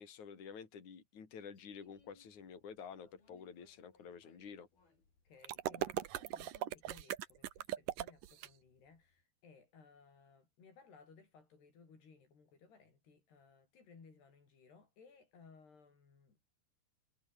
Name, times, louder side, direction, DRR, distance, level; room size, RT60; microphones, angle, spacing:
voice 1, 0.0-4.7, left 6 dB, 50° left, 5.0 m, -50 dB
sound 1, 1.5-9.2, left 4 dB, 65° left, 9.9 m, -74 dB
voice 2, 5.2-16.4, left 5 dB, 90° left, 8.6 m, -62 dB
sound 2, 5.4-8.5, right 13 dB, 65° right, 2.6 m, -39 dB
omnidirectional pair, 4.6 m